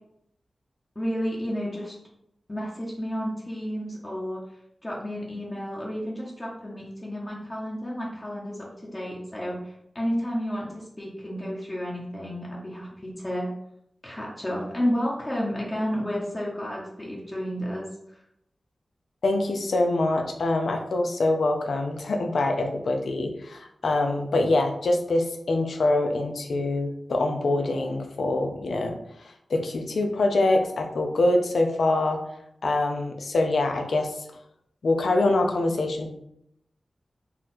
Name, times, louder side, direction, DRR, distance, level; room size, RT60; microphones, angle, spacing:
voice 1, 0.9-2.0 2.5-4.4 4.8-13.5 14.0-18.2, equal, 20° left, -4 dB, 0.9 m, -31 dB
voice 2, 19.2-28.9 29.5-32.2 32.6-34.3 34.8-36.1, left 2 dB, 85° left, 4 dB, 0.6 m, -24 dB
4.1 x 2.5 x 4.2 m, 0.77 s
wide cardioid pair, 100°, 0 cm